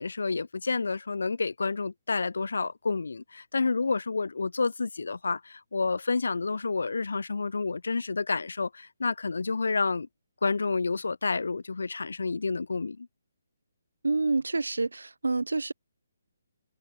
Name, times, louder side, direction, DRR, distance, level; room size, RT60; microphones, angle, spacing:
voice 1, 0.0-10.1 10.4-13.1, left 4 dB, 65° left, 3.5 m, -29 dB
voice 2, 14.0-15.7, right 3 dB, 75° right, 1.1 m, -28 dB
figure-of-eight pair, 140°, 0 cm